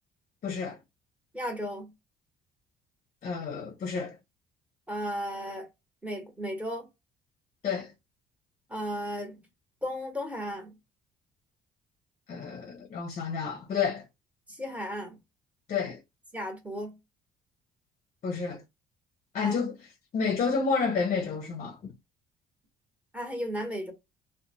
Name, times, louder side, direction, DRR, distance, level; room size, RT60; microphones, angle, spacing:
voice 1, 0.4-0.8 3.2-4.1 7.6-7.9 12.3-14.1 15.7-16.0 18.2-18.6 19.3-19.7 20.1-21.9, left 5 dB, 45° left, 0.6 m, -30 dB
voice 2, 1.3-1.9 4.9-5.7 6.0-6.9 8.7-9.4 9.8-10.7 14.5-15.2 16.3-16.9 19.4-19.5 23.1-23.9, equal, 10° right, 1.1 m, -34 dB
2.5 x 2.1 x 2.9 m
cardioid pair, 110°, 17 cm